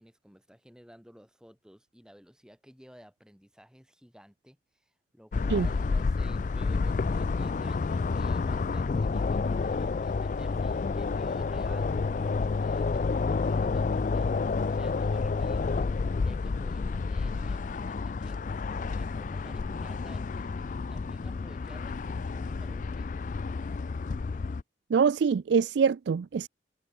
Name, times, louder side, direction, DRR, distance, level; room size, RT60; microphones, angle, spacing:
voice 1, 0.0-23.2, equal, 5° right, 4.9 m, -53 dB
sound 1, 5.3-24.6, left 4 dB, 45° left, 0.3 m, -30 dB
voice 2, 24.9-26.5, right 6 dB, 75° right, 0.4 m, -24 dB
head